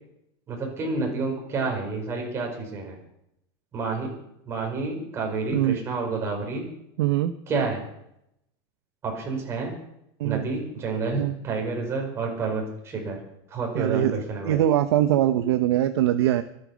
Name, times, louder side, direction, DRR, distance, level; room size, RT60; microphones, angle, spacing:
voice 1, 0.5-3.0 3.7-4.1 4.5-6.7 7.5-7.9 9.0-9.7 10.2-13.2 13.5-14.6, right 4 dB, 20° right, 0 dB, 4.9 m, -29 dB
voice 2, 7.0-7.3 10.2-10.4 11.2-11.3 13.7-16.4, right 12 dB, 75° right, 8 dB, 1.0 m, -22 dB
24.0 x 9.1 x 6.4 m, 0.78 s
supercardioid pair, 175°, 14 cm